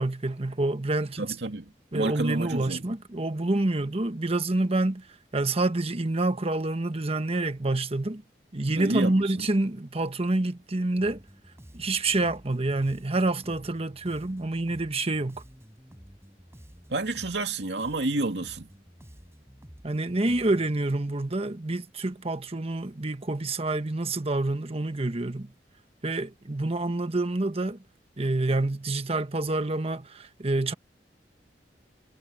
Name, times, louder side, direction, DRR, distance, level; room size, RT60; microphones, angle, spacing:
voice 1, 0.0-1.3 1.9-5.1 5.3-8.2 8.5-11.2 11.7-15.4 19.8-25.5 26.0-27.8 28.2-30.7, right 2 dB, 35° right, 1.2 m, -27 dB
voice 2, 1.2-3.0 8.7-9.5 16.9-18.7, right 2 dB, 75° right, 2.4 m, -30 dB
Bass guitar, 11.0-20.9, equal, 15° right, 4.6 m, -51 dB
head